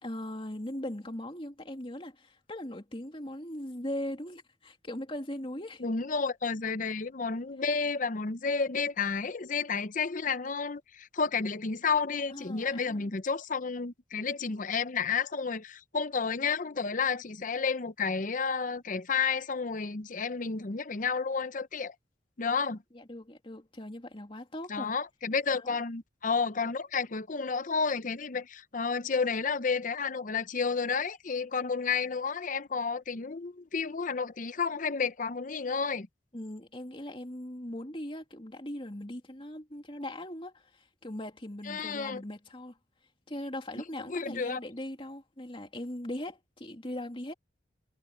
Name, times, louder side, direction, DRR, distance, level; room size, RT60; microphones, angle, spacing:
voice 1, 0.0-5.8 12.3-13.1 22.9-24.9 25.5-25.8 36.3-42.8 43.3-47.3, left 1 dB, 30° left, 2.9 m, -40 dB
voice 2, 5.8-21.9 22.4-22.8 24.7-36.1 41.7-42.2 44.1-44.6, left 5 dB, 45° left, 0.7 m, -31 dB
head